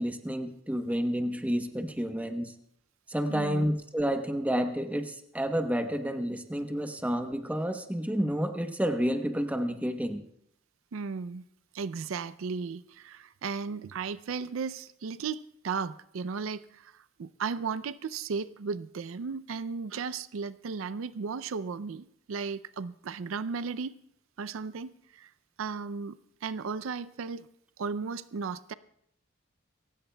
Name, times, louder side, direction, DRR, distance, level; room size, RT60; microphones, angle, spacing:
voice 1, 0.0-2.5 3.1-10.2, equal, 5° right, 5 dB, 0.9 m, -30 dB
voice 2, 3.3-3.7 10.9-11.4 11.7-23.9 24.4-25.3 25.6-27.5 27.8-28.7, right 5 dB, 80° right, 16 dB, 0.4 m, -35 dB
27.5 x 16.0 x 2.3 m, 0.73 s
head